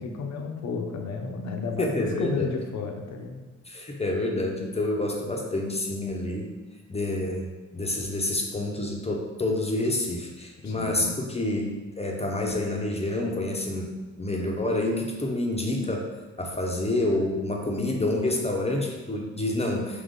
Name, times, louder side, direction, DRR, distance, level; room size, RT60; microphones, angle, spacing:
voice 1, 0.0-3.4 10.6-11.1, left 4 dB, 65° left, 3 dB, 0.7 m, -32 dB
voice 2, 1.8-2.5 3.7-6.5 6.9-16.1 16.4-20.0, left 2 dB, 20° left, 0 dB, 0.6 m, -28 dB
3.7 x 3.0 x 3.7 m, 1.2 s
cardioid pair, 85°, 29 cm